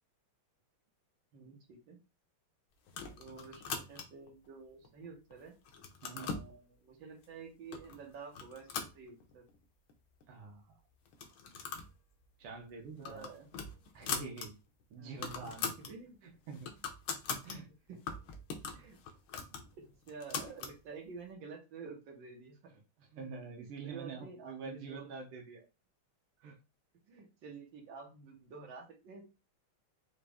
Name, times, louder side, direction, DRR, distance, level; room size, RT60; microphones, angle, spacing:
voice 1, 1.3-2.0 3.2-5.6 6.1-9.5 13.0-13.8 15.0-16.2 17.9-18.0 18.7-19.0 19.4-22.7 23.5-25.1 27.1-29.2, right 5 dB, 65° right, 0 dB, 1.9 m, -50 dB
sound 1, 2.9-4.3 4.8-5.3 5.6-6.5 7.2-7.3 7.7-8.0 8.3-9.6 9.9-10.0 10.2-10.3 11.1-11.9 12.2-12.4 12.8-14.5 14.8-14.9 15.1-15.9 16.3-17.6 18.1-20.8, left 5 dB, 75° left, 1.6 m, -41 dB
voice 2, 10.3-10.7 12.4-13.3 13.9-14.6 14.9-15.7 16.2-16.7 17.4-17.7 18.8-18.9 22.7-25.7 26.4-26.6, right 4 dB, 85° right, 0 dB, 1.8 m, -46 dB
5.0 x 2.6 x 3.4 m, 0.29 s
omnidirectional pair, 2.3 m